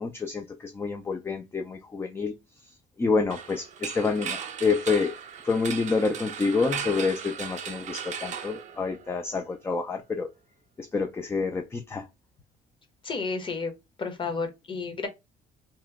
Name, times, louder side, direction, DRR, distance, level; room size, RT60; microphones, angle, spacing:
voice 1, 0.0-2.3 3.0-5.1 5.4-10.3 10.8-12.1, left 4 dB, 15° left, 0.3 m, -28 dB
sound 1, 3.3-9.3, right 8 dB, 45° right, 0.5 m, -37 dB
voice 2, 13.0-13.7 14.0-15.1, left 4 dB, 30° left, 0.9 m, -31 dB
2.9 x 2.1 x 3.4 m
cardioid pair, 110°, 17 cm